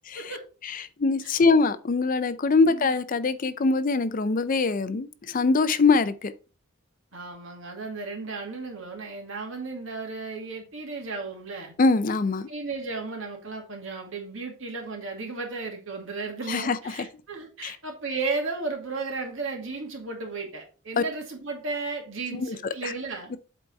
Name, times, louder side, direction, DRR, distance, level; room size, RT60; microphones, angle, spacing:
voice 1, 0.6-6.3 11.8-12.5 16.5-16.8 17.6-17.8 21.0-21.1 22.3-22.6 22.8-22.9 23.3-23.4, left 4 dB, 40° left, 0.5 m, -23 dB
voice 2, 2.6-2.9 7.1-11.7 12.5-23.3, right 3 dB, 65° right, 2.2 m, -34 dB
8.1 x 4.1 x 4.5 m
head